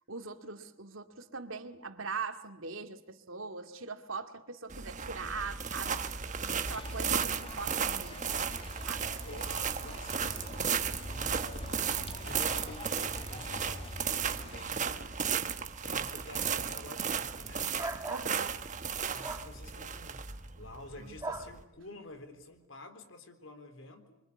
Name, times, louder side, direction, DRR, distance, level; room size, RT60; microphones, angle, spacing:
voice 1, 0.1-6.0 6.4-8.2 8.8-9.1 18.1-18.6 21.0-21.2, right 4 dB, 80° right, 2.3 m, -41 dB
sound 1, 4.7-21.6, right 7 dB, 35° right, 1.3 m, -35 dB
sound 2, 6.6-14.6, left 1 dB, 30° left, 1.8 m, -45 dB
voice 2, 9.0-11.6 12.2-15.1 15.8-17.7 19.1-24.2, left 2 dB, 70° left, 3.8 m, -49 dB
sound 3, 17.8-18.3 19.2-19.5 21.2-21.5, right 2 dB, 15° right, 1.7 m, -37 dB
27.5 x 24.0 x 8.5 m
head